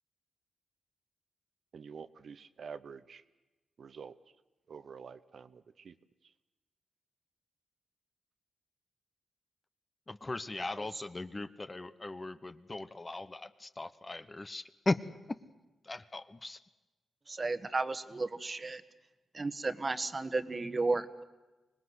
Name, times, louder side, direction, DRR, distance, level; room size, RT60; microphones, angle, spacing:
voice 1, 1.7-3.2 3.8-4.2 4.7-5.9, right 6 dB, 65° right, 11 dB, 0.8 m, -48 dB
voice 2, 10.1-15.0 15.8-16.6, left 2 dB, 30° left, 12 dB, 1.1 m, -38 dB
voice 3, 17.3-18.8 19.3-21.2, right 3 dB, 35° right, 11 dB, 1.4 m, -33 dB
25.0 x 19.5 x 8.1 m, 1.1 s
cardioid pair, 65°, 0 cm